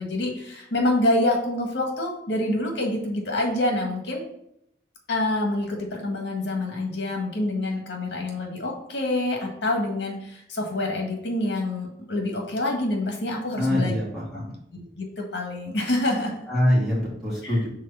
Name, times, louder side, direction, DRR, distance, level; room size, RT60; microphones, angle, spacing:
voice 1, 0.0-4.2 5.1-14.0 14.7-16.5 17.4-17.5, left 1 dB, 75° left, 1 dB, 1.6 m, -26 dB
voice 2, 13.5-14.5 16.5-17.7, left 1 dB, ahead, -9 dB, 2.5 m, -24 dB
4.8 x 3.8 x 5.6 m, 0.78 s
head